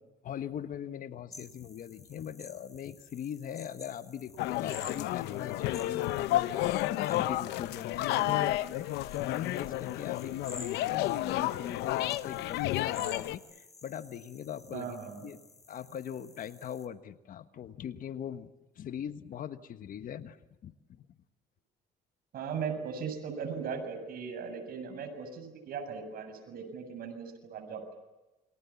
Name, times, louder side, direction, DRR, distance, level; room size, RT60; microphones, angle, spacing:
voice 1, 0.2-8.5 8.7-15.0 15.2-15.4 15.7-20.4 20.6-21.1, left 9 dB, 55° left, 11 dB, 1.4 m, -41 dB
sound 1, 1.3-16.9, left 2 dB, 20° left, 2.8 m, -52 dB
sound 2, 4.4-13.4, left 15 dB, 85° left, 0.9 m, -31 dB
voice 2, 8.2-8.5 14.7-15.3 22.3-27.9, right 6 dB, 60° right, 6 dB, 7.3 m, -38 dB
28.5 x 24.5 x 7.2 m, 1.0 s
cardioid pair, 110°, 17 cm